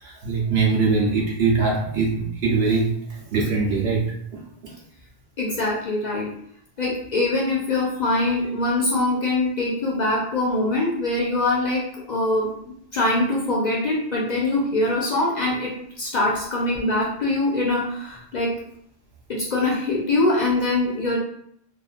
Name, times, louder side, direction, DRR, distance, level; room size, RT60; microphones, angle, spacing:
voice 1, 0.0-2.9 3.3-4.1 4.3-4.7, right 4 dB, 75° right, -3 dB, 1.0 m, -22 dB
voice 2, 5.4-6.3 6.8-11.8 12.1-12.5 12.9-18.5 19.3-21.2, left 2 dB, 55° left, -3 dB, 0.5 m, -23 dB
2.6 x 2.4 x 2.4 m, 0.69 s
omnidirectional pair, 1.1 m